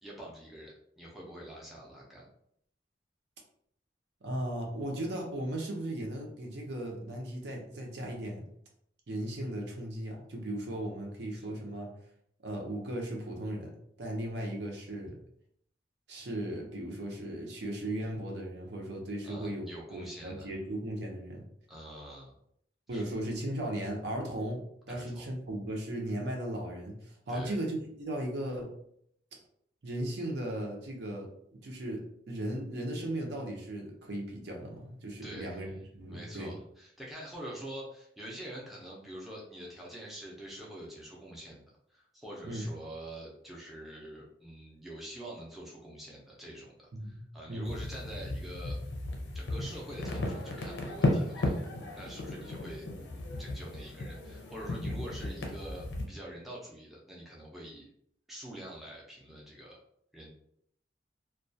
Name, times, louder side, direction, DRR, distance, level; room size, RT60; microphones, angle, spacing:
voice 1, 0.0-2.3 11.4-11.5 19.2-20.5 21.7-22.3 22.9-23.0 24.9-25.3 27.3-27.6 35.2-35.7 36.1-41.6 41.9-48.8 49.3-51.5 51.9-52.9 53.4-57.9 58.3-59.8 60.1-60.3, right 1 dB, ahead, -4 dB, 0.5 m, -45 dB
voice 2, 4.2-8.4 9.1-11.9 12.4-13.7 14.0-15.2 16.1-21.4 22.9-28.7 29.8-35.7 35.9-36.6 42.4-42.6 46.9-47.7, right 1 dB, 70° right, 0 dB, 0.6 m, -37 dB
sound 1, 47.7-56.0, left 1 dB, 90° left, 0.5 m, -35 dB
2.2 x 2.2 x 2.6 m, 0.69 s
head